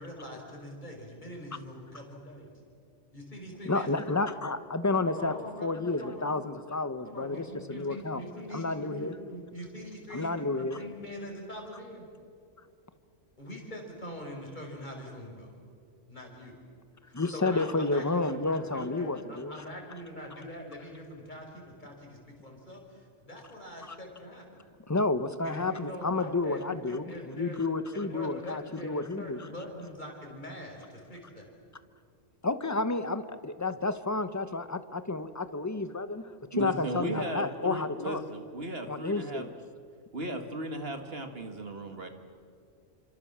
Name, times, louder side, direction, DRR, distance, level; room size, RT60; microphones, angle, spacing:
voice 1, 0.0-2.5 3.1-4.4 5.1-6.5 7.0-12.1 13.4-15.5 16.1-16.6 17.1-24.6 25.4-27.6 27.9-31.5, equal, 40° left, 0 dB, 5.8 m, -43 dB
voice 2, 3.6-5.3 5.6-8.2 8.5-9.1 10.1-10.8 17.1-19.5 24.9-29.5 32.4-36.2 36.6-38.2 38.9-39.5, left 3 dB, 15° left, 11 dB, 1.0 m, -30 dB
voice 3, 36.5-39.5 40.1-42.1, right 1 dB, 55° right, 6 dB, 2.3 m, -36 dB
28.5 x 26.0 x 7.4 m, 2.4 s
omnidirectional pair, 1.2 m